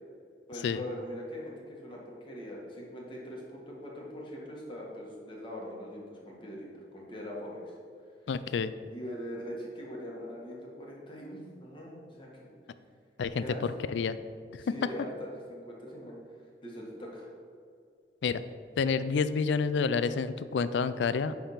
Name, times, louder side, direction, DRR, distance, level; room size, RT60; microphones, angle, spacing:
voice 1, 0.5-7.7 8.9-12.5 13.3-13.9 14.6-16.2 16.6-17.3, equal, 30° left, -3 dB, 1.6 m, -42 dB
voice 2, 8.3-8.7 13.2-14.2 14.7-14.8 18.2-18.4 18.8-21.3, left 5 dB, 85° left, 13 dB, 0.4 m, -29 dB
10.0 x 3.5 x 5.7 m, 2.3 s
head